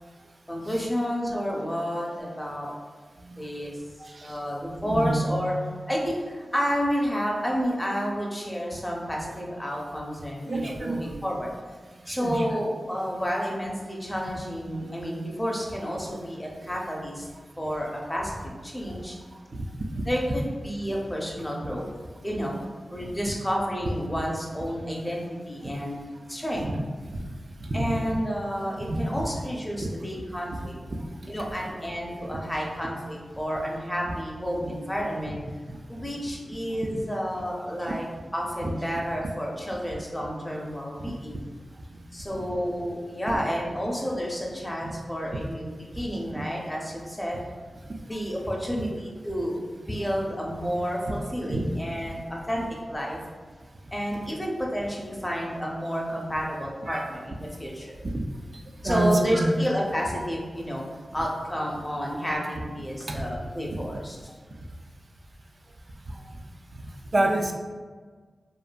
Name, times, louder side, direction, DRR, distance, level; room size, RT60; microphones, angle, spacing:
voice 1, 0.5-2.7 3.4-3.8 4.2-5.5 5.9-11.5 12.1-17.3 17.6-18.4 18.6-19.2 20.1-21.9 22.2-22.6 22.9-26.0 26.3-26.7 27.7-30.7 31.3-35.4 35.9-38.0 38.3-41.4 42.1-47.4 48.1-49.6 49.9-53.2 53.9-58.0 58.8-60.8 61.1-64.2, equal, 10° left, -2 dB, 0.6 m, -30 dB
voice 2, 4.8-5.4 10.5-11.1 12.1-12.6 21.6-21.8 26.6-26.8 27.1-27.3 27.6-28.0 28.9-29.0 29.8-29.9 38.6-38.7 43.3-43.4 44.8-44.9 51.5-51.7 56.9-57.1 58.1-58.2 58.8-59.6 63.1-63.2 63.7-63.8 67.1-67.5, right 1 dB, 50° right, 2 dB, 0.3 m, -27 dB
2.6 x 2.5 x 2.2 m, 1.5 s
cardioid pair, 50°, 0 cm